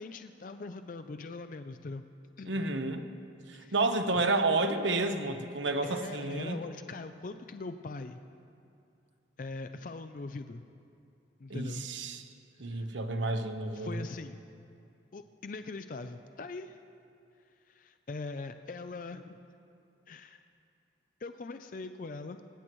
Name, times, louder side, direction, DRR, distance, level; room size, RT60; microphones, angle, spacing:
voice 1, 0.0-2.0 2.4-2.6 3.5-3.8 5.8-8.2 9.4-10.7 11.4-11.9 12.7-12.9 13.7-14.4 15.1-16.8 17.7-19.4 20.1-20.4 21.2-22.4, left 3 dB, 45° left, 9 dB, 0.4 m, -41 dB
voice 2, 2.4-3.1 3.7-6.6 11.5-12.2 12.6-14.0, right 2 dB, 80° right, 8 dB, 1.0 m, -30 dB
18.5 x 18.5 x 3.1 m, 2.6 s
head